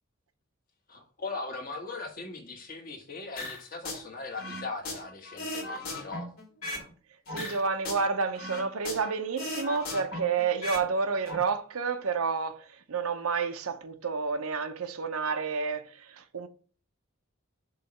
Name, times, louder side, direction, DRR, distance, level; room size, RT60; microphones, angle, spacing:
voice 1, 0.9-6.3, left 3 dB, 45° left, 1.4 m, -39 dB
sound 1, 3.4-4.0 4.4-6.9 7.3-9.1 9.4-10.9 11.1-11.4, left 1 dB, 80° left, 2.5 m, -37 dB
voice 2, 7.3-16.5, right 5 dB, 85° right, 0.8 m, -30 dB
6.7 x 3.1 x 5.8 m
head